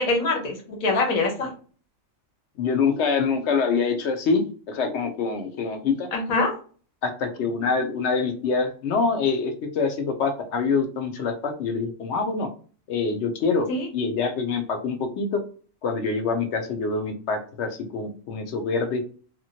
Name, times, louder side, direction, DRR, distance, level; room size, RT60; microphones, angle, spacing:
voice 1, 0.0-1.5 6.1-6.5 13.7-13.9, left 3 dB, 90° left, 2 dB, 1.3 m, -24 dB
voice 2, 2.6-6.1 7.0-12.5 12.9-13.7 13.9-15.4 15.8-19.0, left 4 dB, 65° left, 5 dB, 0.8 m, -25 dB
2.9 x 2.4 x 2.7 m, 0.41 s
omnidirectional pair, 1.4 m